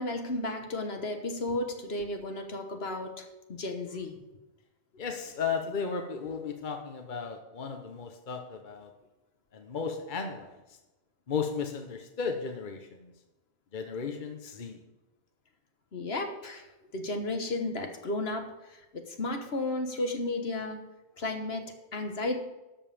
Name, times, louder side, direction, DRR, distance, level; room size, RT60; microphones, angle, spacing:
voice 1, 0.0-4.2 15.9-16.6 16.9-18.5 18.9-20.8 21.2-22.4, left 2 dB, 70° left, 5 dB, 1.6 m, -33 dB
voice 2, 5.0-8.9 9.5-10.5 11.3-13.1 13.7-14.8, left 5 dB, 50° left, 5 dB, 1.1 m, -35 dB
12.5 x 5.5 x 7.0 m, 1.0 s
omnidirectional pair, 1.1 m